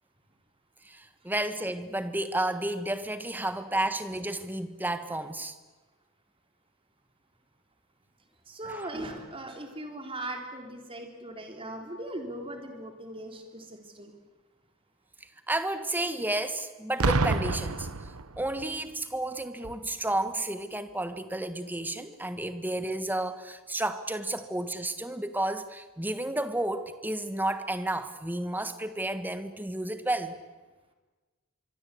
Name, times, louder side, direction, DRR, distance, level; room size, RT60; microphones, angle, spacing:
voice 1, 0.8-5.6 8.7-8.9 15.5-30.3, right 1 dB, 10° right, 10 dB, 1.4 m, -32 dB
voice 2, 8.5-14.1, right 1 dB, 25° right, 4 dB, 3.8 m, -39 dB
Boom, 17.0-18.8 19.6-19.9, right 3 dB, 75° right, 1.1 m, -28 dB
25.0 x 23.0 x 8.5 m, 1.3 s
head